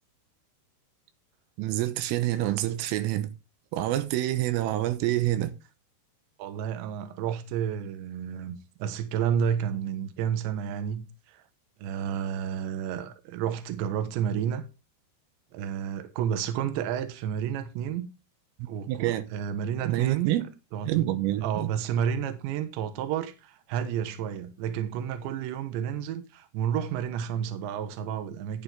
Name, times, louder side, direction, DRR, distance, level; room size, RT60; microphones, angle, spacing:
voice 1, 1.6-3.3 3.7-5.5 18.6-19.3 19.8-20.5 20.9-21.7, right 14 dB, 85° right, 3.6 m, -27 dB
voice 2, 6.4-11.4 11.8-14.6 15.5-18.1 18.7-20.3 20.7-21.1 21.4-28.6, right 8 dB, 70° right, 3.2 m, -31 dB
11.5 x 9.0 x 3.5 m
omnidirectional pair, 5.9 m